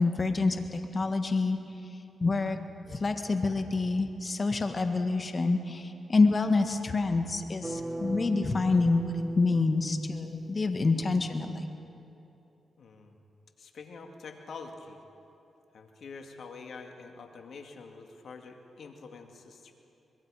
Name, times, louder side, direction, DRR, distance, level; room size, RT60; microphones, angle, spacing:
voice 1, 0.0-1.6 2.2-2.6 2.8-11.7, left 3 dB, 40° left, 6 dB, 1.8 m, -27 dB
sound 1, 7.6-10.7, right 2 dB, 25° right, 1.0 m, -39 dB
voice 2, 12.8-13.1 13.6-15.0 15.7-19.7, left 4 dB, 70° left, 4 dB, 2.2 m, -46 dB
24.5 x 22.0 x 5.1 m, 2.9 s
supercardioid pair, 55°, 0 cm